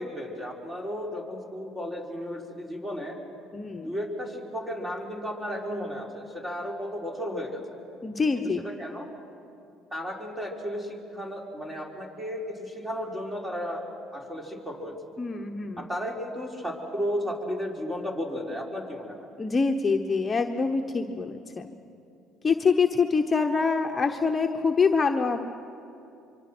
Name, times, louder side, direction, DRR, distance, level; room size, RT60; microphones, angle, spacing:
voice 1, 0.0-3.2 3.8-7.6 8.6-9.1 9.9-15.0 15.8-19.3, equal, 15° right, 0 dB, 4.4 m, -34 dB
voice 2, 3.5-3.9 8.0-8.6 15.2-15.9 19.4-21.7 22.4-25.5, left 4 dB, 25° left, 3 dB, 1.1 m, -25 dB
24.5 x 24.5 x 6.3 m, 2.7 s
supercardioid pair, 80°, 0 cm